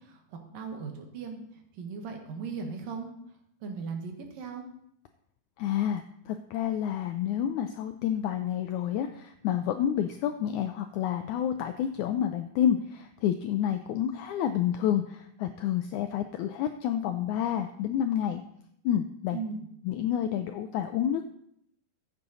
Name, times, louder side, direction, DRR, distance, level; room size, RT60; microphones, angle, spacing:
voice 1, 0.0-3.1 3.6-4.6 19.3-19.7, right 5 dB, 75° right, 3 dB, 3.1 m, -38 dB
voice 2, 5.6-18.4 18.8-19.4 19.8-21.2, left 10 dB, 90° left, 7 dB, 1.7 m, -29 dB
15.0 x 8.2 x 4.1 m, 0.74 s
omnidirectional pair, 4.0 m